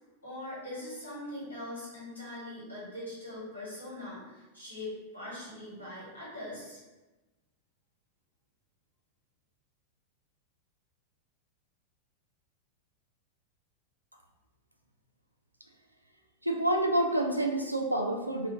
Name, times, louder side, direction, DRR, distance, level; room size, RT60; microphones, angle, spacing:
voice 1, 0.2-6.8, left 1 dB, 80° left, -8 dB, 1.4 m, -41 dB
voice 2, 16.4-18.5, right 1 dB, 85° right, 2 dB, 0.3 m, -28 dB
3.0 x 2.3 x 2.7 m, 1.1 s
figure-of-eight pair, 90°, 0 cm